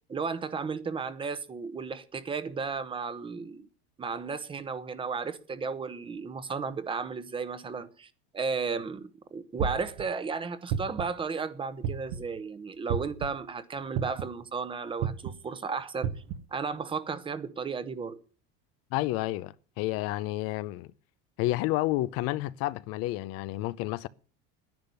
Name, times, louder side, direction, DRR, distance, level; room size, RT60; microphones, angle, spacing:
voice 1, 0.1-3.7 4.0-8.1 8.3-16.1 16.5-18.2, right 5 dB, 20° right, 1.0 m, -34 dB
sound 1, 9.6-10.0 10.7-11.2 11.8-12.3 12.9-13.3 13.9-14.4 15.0-15.3 16.0-16.4, right 8 dB, 55° right, 1.2 m, -30 dB
voice 2, 18.9-20.9 21.4-24.1, left 17 dB, 55° left, 0.6 m, -30 dB
10.5 x 9.8 x 9.7 m
cardioid pair, 150°, 29 cm